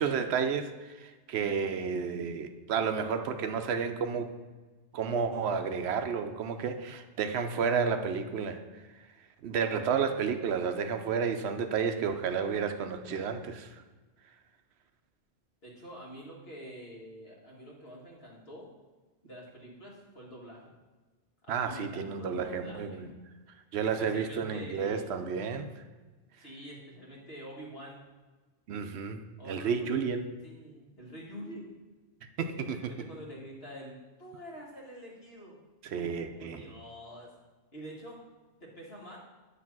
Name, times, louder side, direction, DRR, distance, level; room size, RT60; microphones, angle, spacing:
voice 1, 0.0-4.3 4.9-8.6 9.4-13.8 21.5-23.1 23.7-25.7 28.7-29.2 29.5-30.3 32.4-32.9 35.9-36.7, right 6 dB, 75° right, 7 dB, 0.8 m, -31 dB
voice 2, 15.6-18.7 19.2-20.6 21.4-23.1 23.8-25.3 26.4-28.1 29.4-31.7 32.7-35.6 36.3-37.3 37.7-38.2 38.6-39.2, equal, 60° left, -3 dB, 1.9 m, -46 dB
9.4 x 3.3 x 5.9 m, 1.3 s
omnidirectional pair, 1.1 m